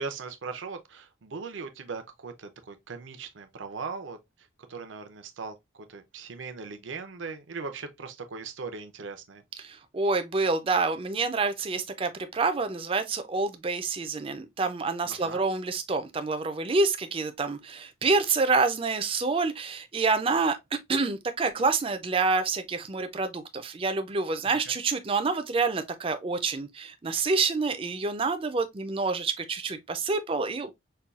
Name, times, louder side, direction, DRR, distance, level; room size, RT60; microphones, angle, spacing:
voice 1, 0.0-9.4 15.0-15.4 24.4-24.7, right 4 dB, 75° right, 0.6 m, -39 dB
voice 2, 9.6-20.6 20.9-30.7, right 4 dB, 30° right, 0.4 m, -27 dB
5.4 x 2.3 x 2.3 m
head